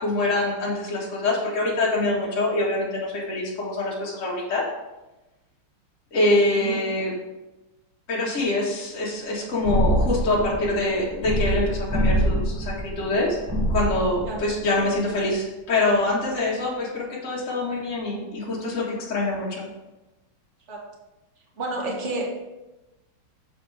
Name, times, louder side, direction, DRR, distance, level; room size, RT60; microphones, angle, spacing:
voice 1, 0.0-4.6 6.1-7.1 8.1-19.7, left 2 dB, 40° left, -6 dB, 1.8 m, -25 dB
sound 1, 9.6-15.1, equal, 20° right, 0.5 m, -25 dB
voice 2, 21.6-22.3, right 2 dB, 35° right, -2 dB, 1.5 m, -29 dB
7.1 x 4.4 x 4.7 m, 1.0 s
omnidirectional pair, 2.3 m